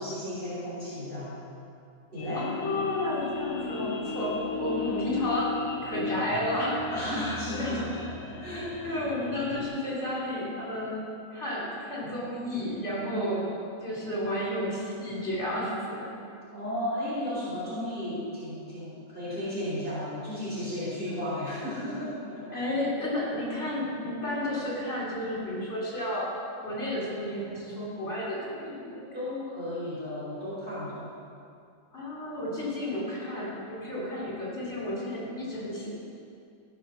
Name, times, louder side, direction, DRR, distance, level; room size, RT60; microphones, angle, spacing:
voice 1, 0.0-1.4 2.1-2.5 4.7-5.2 6.9-9.1 13.0-13.5 16.5-22.7 29.1-31.1, left 1 dB, 40° right, -10 dB, 3.9 m, -34 dB
sound 1, 2.2-9.7, left 5 dB, 90° left, 1.5 m, -36 dB
voice 2, 2.3-5.6 5.8-6.8 7.6-7.9 8.8-13.4 13.8-16.1 22.5-26.3 26.6-29.1 31.9-35.9, left 1 dB, 60° left, -6 dB, 4.1 m, -32 dB
13.5 x 6.8 x 6.4 m, 2.4 s
omnidirectional pair, 1.4 m